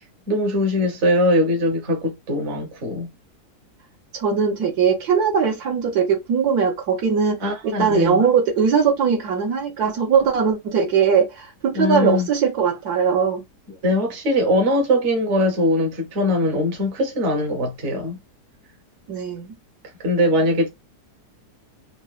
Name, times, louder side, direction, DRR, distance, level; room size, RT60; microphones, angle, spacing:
voice 1, 0.3-3.1 7.4-8.2 11.7-12.3 13.8-18.2 20.0-20.7, left 1 dB, 50° right, 1.1 m, -21 dB
voice 2, 4.1-13.4 19.1-19.5, right 6 dB, 70° right, 1.3 m, -20 dB
3.7 x 2.1 x 2.3 m
omnidirectional pair, 1.7 m